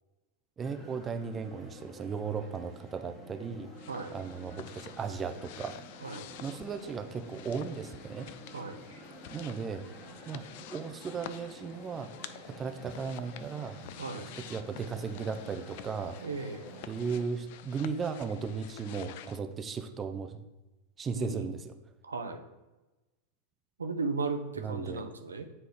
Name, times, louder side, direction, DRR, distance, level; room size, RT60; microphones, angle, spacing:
sound 1, 0.6-17.2, equal, 20° left, 1.6 m, -50 dB
voice 1, 0.6-3.7 4.1-5.8 6.4-8.3 9.3-9.9 10.3-10.4 10.7-12.1 12.5-13.8 14.5-16.2 16.9-20.4 21.0-21.7 24.6-25.0, right 5 dB, 20° right, 8 dB, 0.4 m, -36 dB
sound 2, 3.8-19.4, left 12 dB, 50° left, 0.3 m, -49 dB
voice 2, 14.0-14.3 16.2-16.7 21.1-21.5 22.0-22.4 23.8-25.4, right 4 dB, 75° right, 6 dB, 0.6 m, -36 dB
9.3 x 3.3 x 3.5 m, 1.1 s
figure-of-eight pair, 90°, 0 cm